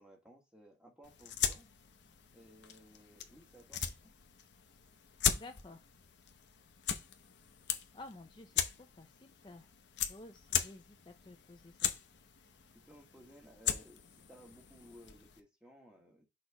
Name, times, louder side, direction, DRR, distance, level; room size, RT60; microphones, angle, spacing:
voice 1, 0.0-1.7 2.3-4.1 12.7-16.3, equal, 5° right, 1.5 m, -59 dB
sound 1, 1.0-15.4, left 9 dB, 80° left, 0.9 m, -39 dB
voice 2, 5.4-5.8 7.9-8.5 8.8-9.7 10.0-11.9, left 2 dB, 25° left, 0.5 m, -52 dB
6.3 x 3.3 x 4.8 m
head